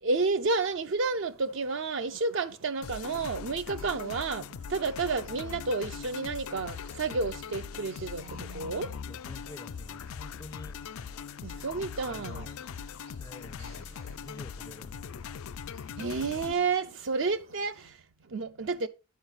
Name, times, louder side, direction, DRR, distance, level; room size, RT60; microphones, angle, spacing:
voice 1, 0.0-9.1 11.4-12.5 15.9-18.9, right 4 dB, 60° right, 0.5 m, -31 dB
sound 1, 1.0-17.9, right 3 dB, 80° right, 2.1 m, -59 dB
sound 2, 2.8-16.5, left 7 dB, 85° left, 0.4 m, -41 dB
voice 2, 9.1-10.8 12.1-12.7 13.2-15.2, left 2 dB, 15° left, 0.4 m, -48 dB
10.5 x 4.8 x 5.5 m
head